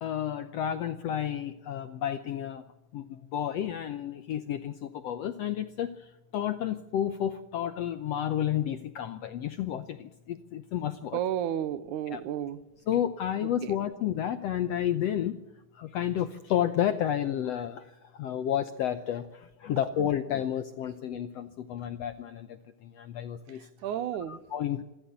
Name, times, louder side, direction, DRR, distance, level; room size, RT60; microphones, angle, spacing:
voice 1, 0.0-2.6 2.9-5.9 6.3-11.2 12.1-12.2 12.9-15.4 15.8-17.8 18.2-22.5 22.8-23.7 24.3-24.8, left 10 dB, 75° left, 11 dB, 1.5 m, -31 dB
voice 2, 11.1-12.6 13.6-13.7 23.8-24.4, right 10 dB, 75° right, 15 dB, 2.2 m, -32 dB
26.5 x 13.0 x 8.2 m, 1.0 s
omnidirectional pair, 3.8 m